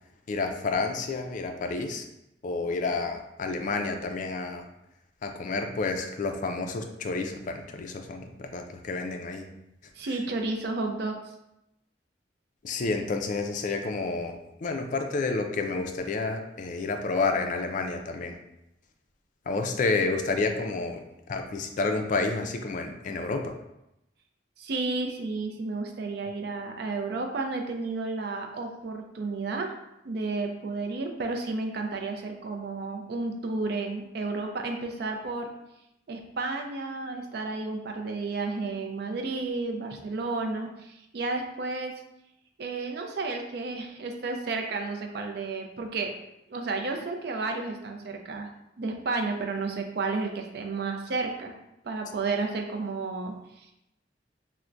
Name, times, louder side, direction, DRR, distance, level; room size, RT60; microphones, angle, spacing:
voice 1, 0.3-2.1 2.4-4.7 5.2-9.5 12.6-18.4 19.5-21.0 21.3-23.5, left 3 dB, 45° left, 4 dB, 0.3 m, -30 dB
voice 2, 10.0-11.2 24.6-29.7 30.0-35.5 36.1-41.9 42.6-46.2 46.5-48.5 48.8-51.5 51.8-53.7, right 3 dB, 60° right, 3 dB, 0.4 m, -32 dB
4.3 x 2.1 x 2.5 m, 0.86 s
head